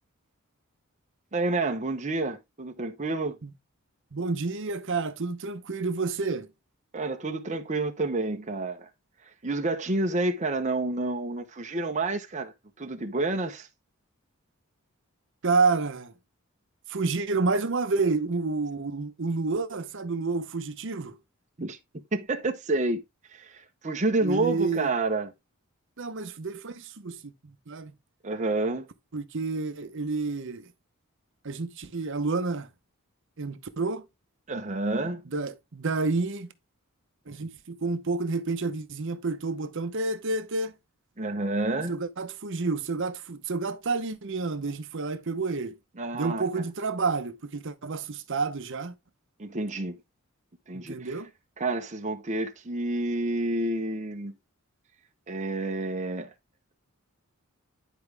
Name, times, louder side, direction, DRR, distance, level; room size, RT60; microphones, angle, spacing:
voice 1, 1.3-3.4 6.9-8.9 9.4-12.5 12.8-13.7 21.6-21.8 22.1-23.0 23.3-25.3 28.2-28.9 34.5-35.2 41.2-42.0 46.0-46.4 49.4-50.0 50.7-51.2 51.6-54.3 55.3-56.3, right 2 dB, 35° right, 0.9 m, -29 dB
voice 2, 4.1-6.5 15.4-16.1 16.9-21.2 24.2-24.9 26.0-27.9 29.1-30.7 31.4-32.7 33.4-34.1 35.3-36.5 37.3-40.7 41.9-45.7 46.1-48.9 50.7-51.3, right 3 dB, 60° right, 0.8 m, -29 dB
10.5 x 4.9 x 3.3 m
head